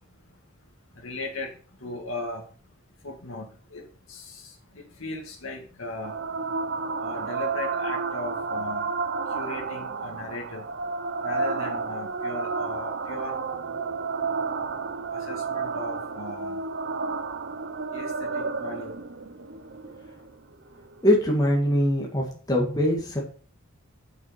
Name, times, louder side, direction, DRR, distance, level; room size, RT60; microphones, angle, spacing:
voice 1, 0.0-2.7 3.0-6.2 6.8-9.0 9.3-10.7 11.0-13.4 15.1-16.7 17.5-17.6 17.9-19.0 20.0-20.1, left 2 dB, 75° left, 2.0 m, -38 dB
sound 1, 6.0-21.0, right 4 dB, 55° right, 0.8 m, -31 dB
voice 2, 21.0-23.2, equal, 20° left, 2.0 m, -22 dB
7.3 x 6.4 x 5.8 m
head